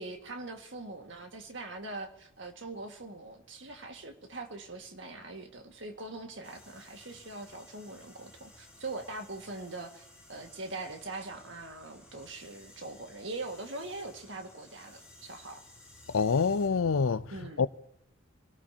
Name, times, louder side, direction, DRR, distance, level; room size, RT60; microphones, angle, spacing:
voice 1, 0.0-15.6 17.3-17.6, right 2 dB, 65° right, 1.9 m, -42 dB
sound 1, 6.4-16.7, left 1 dB, 5° right, 4.8 m, -56 dB
voice 2, 16.1-17.7, left 5 dB, 90° left, 0.6 m, -27 dB
26.5 x 18.0 x 2.9 m
head